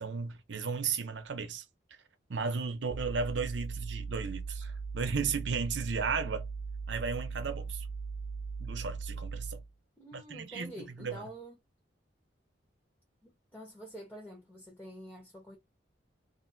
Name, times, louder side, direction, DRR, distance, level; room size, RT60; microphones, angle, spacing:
voice 1, 0.0-1.6 2.3-6.5 6.9-7.9 8.6-9.6 10.1-10.7 11.0-11.2, right 5 dB, 75° right, 0.7 m, -34 dB
sound 1, 2.9-9.7, right 4 dB, 40° right, 0.5 m, -39 dB
voice 2, 10.0-11.6 13.2-15.6, equal, 10° left, 0.8 m, -47 dB
3.0 x 2.5 x 2.6 m
head